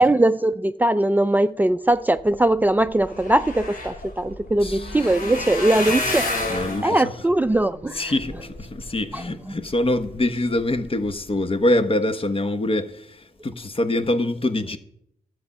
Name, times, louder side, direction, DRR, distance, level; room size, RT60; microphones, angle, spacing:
voice 1, 0.0-8.0 9.1-9.2, right 1 dB, 10° right, 0.4 m, -20 dB
sound 1, 2.5-2.6 2.8-9.2 9.7-10.2 10.6-10.8 11.1-11.2, left 2 dB, 70° left, 4.8 m, -30 dB
voice 2, 4.6-4.9 6.5-7.1 7.9-14.8, left 1 dB, 40° left, 1.2 m, -24 dB
12.0 x 7.8 x 5.5 m
cardioid pair, 55°, 15 cm